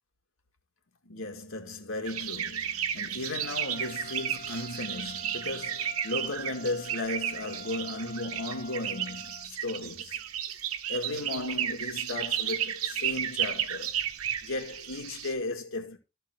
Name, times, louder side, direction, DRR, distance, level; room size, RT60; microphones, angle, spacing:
voice 1, 1.1-10.2 10.9-14.0 14.4-16.0, left 2 dB, 70° left, 2.3 m, -35 dB
sound 1, 2.0-15.3, right 10 dB, 90° right, 1.1 m, -33 dB
Trumpet, 3.4-9.5, left 2 dB, 45° left, 0.7 m, -48 dB
13.5 x 4.5 x 6.1 m
head